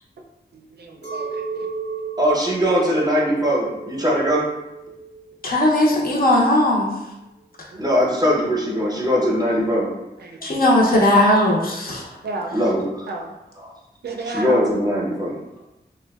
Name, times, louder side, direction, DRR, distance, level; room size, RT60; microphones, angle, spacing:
voice 1, 0.5-1.7 7.7-8.0 10.2-10.4 12.2-12.7 13.0-13.3 14.0-14.6, right 2 dB, 70° right, 1 dB, 0.4 m, -33 dB
Chink clink, 1.0-6.5, right 4 dB, 75° left, 1.1 m, -34 dB
voice 2, 2.2-4.5 7.8-9.9 12.5-12.8 14.4-15.3, equal, 20° right, -3 dB, 0.7 m, -20 dB
voice 3, 5.4-6.9 10.4-12.1, left 1 dB, 55° left, -3 dB, 0.6 m, -17 dB
2.6 x 2.2 x 2.2 m, 0.94 s
wide cardioid pair, 60°, 18 cm